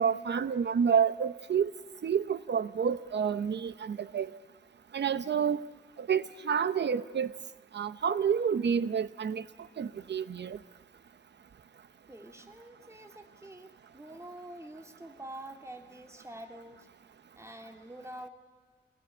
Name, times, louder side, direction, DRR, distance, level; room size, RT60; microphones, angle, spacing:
voice 1, 0.0-1.7 2.0-4.3 4.9-5.6 6.0-7.4 7.7-9.4 9.8-10.6, right 7 dB, 85° right, 13 dB, 0.9 m, -29 dB
voice 2, 12.1-16.9 17.3-18.3, right 1 dB, 15° right, 3 dB, 2.8 m, -46 dB
27.5 x 19.5 x 8.8 m, 1.5 s
wide cardioid pair, 70°, 17 cm